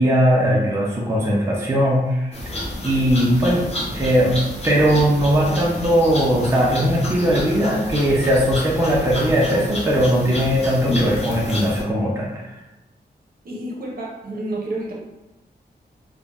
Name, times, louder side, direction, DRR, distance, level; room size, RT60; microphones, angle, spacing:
voice 1, 0.0-3.7 3.9-4.4 4.6-12.6, equal, 15° right, -4 dB, 0.4 m, -19 dB
sound 1, 2.3-11.8, left 1 dB, 35° left, 0.6 m, -29 dB
voice 2, 13.4-14.9, right 1 dB, 60° right, -3 dB, 0.6 m, -29 dB
2.4 x 2.0 x 3.2 m, 1.0 s
wide cardioid pair, 175°, 17 cm